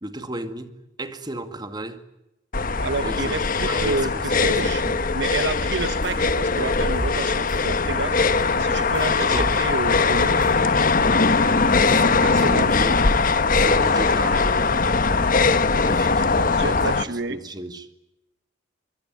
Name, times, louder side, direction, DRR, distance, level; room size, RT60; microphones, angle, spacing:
voice 1, 0.0-2.0 3.0-3.4 3.7-5.0 9.2-9.5 11.8-13.0 13.5-15.0 15.8-17.9, right 1 dB, 20° right, 2.2 m, -34 dB
sound 1, 2.5-17.0, left 4 dB, 45° left, 1.2 m, -20 dB
voice 2, 2.8-4.8 5.1-8.2 8.6-10.4 12.2-12.7 16.5-17.4, right 3 dB, 60° right, 1.1 m, -29 dB
sound 2, 5.6-13.0, right 1 dB, 45° right, 7.0 m, -40 dB
25.0 x 22.5 x 9.6 m
head